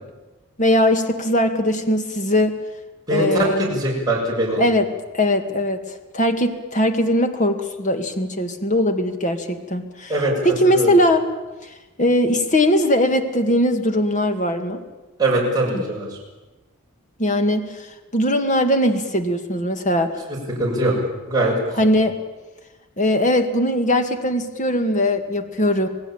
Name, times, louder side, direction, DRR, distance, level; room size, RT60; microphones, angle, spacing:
voice 1, 0.6-2.6 3.1-3.6 4.6-4.9 5.1-11.3 11.6-11.7 12.0-14.8 15.7-15.8 17.2-20.2 21.7-22.2 23.0-25.9, left 1 dB, 35° left, 6 dB, 2.1 m, -20 dB
voice 2, 3.1-4.6 10.1-10.3 10.6-10.9 15.2-16.1 20.6-20.9 21.3-21.5, right 1 dB, 20° right, -3 dB, 6.7 m, -21 dB
27.0 x 18.5 x 8.8 m, 1.2 s
head